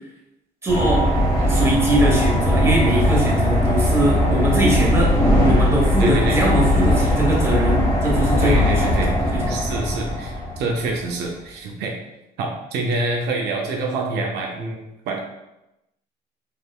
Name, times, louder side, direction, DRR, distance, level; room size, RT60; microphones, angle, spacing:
voice 1, 0.6-1.0 1.5-5.1 5.4-9.6, right 1 dB, 15° right, -3 dB, 1.2 m, -22 dB
sound 1, 0.7-10.9, left 1 dB, 20° left, 1.4 m, -19 dB
voice 2, 6.0-6.4 8.4-9.1 9.5-11.9 12.4-15.2, right 3 dB, 80° right, 0 dB, 0.6 m, -26 dB
3.5 x 3.4 x 2.3 m, 0.92 s
cardioid pair, 110°, 17 cm